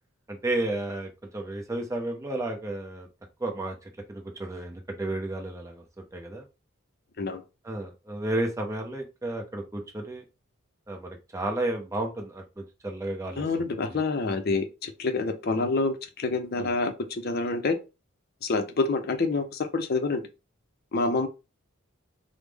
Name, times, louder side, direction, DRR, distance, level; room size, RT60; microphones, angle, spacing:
voice 1, 0.3-3.1 3.4-6.5 7.6-10.2 10.9-14.0 16.6-16.7, right 2 dB, 15° right, 0.5 m, -33 dB
voice 2, 13.4-17.8 18.4-20.2 20.9-21.3, left 3 dB, 45° left, 0.5 m, -27 dB
3.4 x 2.0 x 3.3 m
head